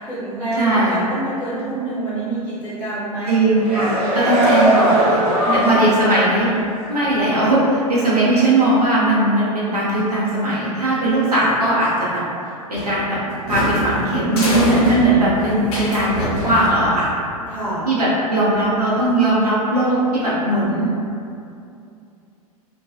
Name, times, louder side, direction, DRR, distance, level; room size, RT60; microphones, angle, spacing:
voice 1, 0.0-3.4 5.3-5.7 17.5-17.9, right 2 dB, 10° left, -12 dB, 1.1 m, -27 dB
voice 2, 0.5-1.0 3.3-5.2 5.5-6.5 6.9-12.2 12.7-13.2 13.5-17.1 17.9-20.9, right 1 dB, 85° right, -9 dB, 0.6 m, -18 dB
sound 1, 3.4-6.1 6.5-6.7, equal, 40° right, 0.7 m, -19 dB
sound 2, 12.7-17.2, left 1 dB, 45° left, 0.7 m, -25 dB
2.4 x 2.2 x 2.6 m, 2.5 s
figure-of-eight pair, 95°, 20 cm